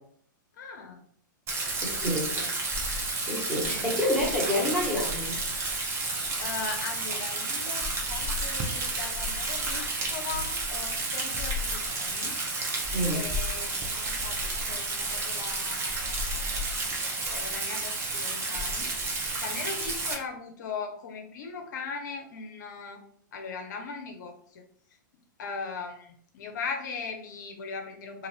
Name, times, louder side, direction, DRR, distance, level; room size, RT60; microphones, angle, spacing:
voice 1, 0.6-1.0 1.9-2.5 3.8-3.9 4.4-4.6 6.4-12.4 13.1-16.5 17.3-23.0 23.3-24.6 25.4-28.3, left 5 dB, 60° left, 4 dB, 0.5 m, -39 dB
Rain, 1.5-20.1, right 2 dB, 25° right, 0.7 m, -31 dB
voice 2, 1.8-2.3 3.3-5.3 12.9-13.2, left 1 dB, 5° right, -5 dB, 1.3 m, -28 dB
2.5 x 2.5 x 3.2 m, 0.62 s
hypercardioid pair, 110°, 11 cm